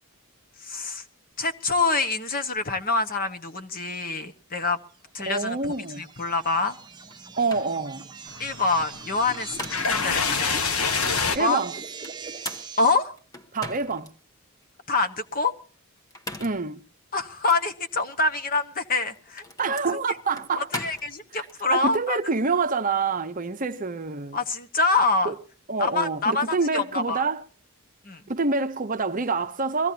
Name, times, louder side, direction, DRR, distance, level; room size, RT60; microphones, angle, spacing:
voice 1, 0.6-1.0 1.4-4.8 5.1-6.8 8.4-10.5 11.2-11.6 12.8-13.1 14.9-15.5 17.1-19.8 20.5-22.2 24.3-25.3 25.8-27.2 28.0-28.2, left 3 dB, 40° left, 1.3 m, -26 dB
sound 1, 5.2-12.9, right 5 dB, 20° right, 1.2 m, -41 dB
voice 2, 5.3-6.1 7.4-8.1 11.3-11.8 13.5-14.1 16.4-16.8 19.6-20.7 21.3-24.4 25.2-25.3 25.7-27.4 28.3-29.9, right 4 dB, 35° right, 0.8 m, -27 dB
sound 2, 7.1-7.2 7.5-7.7 9.2-10.0 10.6-11.2 12.0-14.1 14.6-14.7 16.0-16.7 17.4-17.6 18.8-21.6, left 1 dB, 15° left, 1.1 m, -39 dB
sound 3, 8.3-11.4, left 5 dB, 75° left, 1.2 m, -27 dB
22.5 x 16.0 x 2.8 m
head